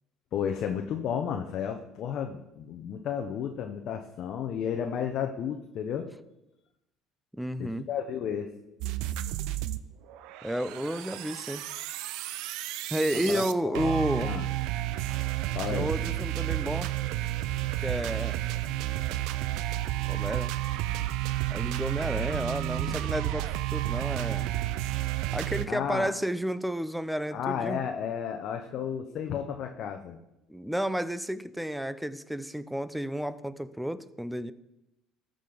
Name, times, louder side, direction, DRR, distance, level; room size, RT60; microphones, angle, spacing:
voice 1, 0.3-6.1 7.6-8.5 13.2-14.5 15.0-15.2 15.5-15.9 22.2-22.3 22.9-23.0 25.7-26.1 27.3-30.2, left 8 dB, 55° left, 4 dB, 0.7 m, -33 dB
voice 2, 7.3-7.9 10.4-11.6 12.9-14.3 15.7-16.9 17.8-18.4 20.0-20.5 21.5-24.5 25.3-27.8 30.5-34.5, equal, 5° right, 15 dB, 0.4 m, -31 dB
sound 1, 8.8-9.8 10.1-25.7, right 15 dB, 75° right, 0.4 m, -31 dB
13.5 x 5.1 x 3.9 m, 0.91 s
supercardioid pair, 105°, 0 cm